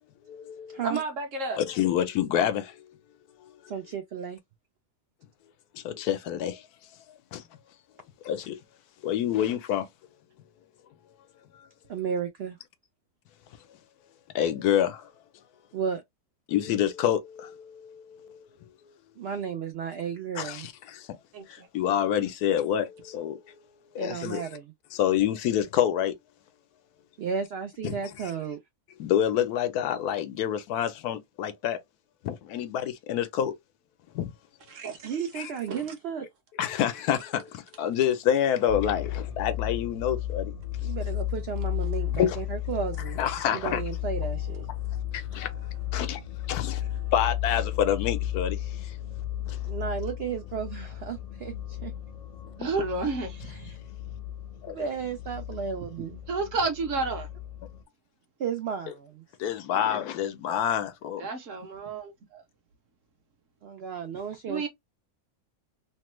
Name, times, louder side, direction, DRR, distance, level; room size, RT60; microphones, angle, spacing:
voice 1, 0.3-0.8 1.6-2.8 5.7-6.7 7.3-7.4 8.2-8.6 9.0-9.9 14.3-15.1 16.5-18.4 20.4-21.1 21.5-23.5 23.9-24.5 24.9-26.1 27.8-27.9 29.0-31.8 32.2-33.5 34.1-34.3 35.4-35.5 36.6-40.5 42.1-42.4 43.2-43.8 45.1-45.5 45.9-46.2 46.5-46.8 47.1-48.9 49.5-49.6 54.6-54.8 59.4-61.2, left 10 dB, 85° left, 1.1 m, -27 dB
voice 2, 0.8-1.6 21.3-21.7 34.7-35.8 41.7-41.8 44.2-44.3 44.9-45.0 45.3-45.6 46.7-47.1 52.6-53.7 56.3-57.3 61.2-62.4 64.5-64.7, right 3 dB, 60° right, 1.1 m, -32 dB
voice 3, 3.7-4.4 11.9-12.6 15.7-16.0 19.2-20.7 24.0-24.7 27.2-28.6 35.0-36.3 40.8-43.2 43.5-44.7 49.6-51.9 53.4-53.6 54.7-56.2 58.4-59.2 63.6-64.7, right 7 dB, 80° right, 0.5 m, -33 dB
sound 1, 38.7-57.8, left 12 dB, 40° left, 0.6 m, -34 dB
3.1 x 2.2 x 3.0 m
omnidirectional pair, 1.6 m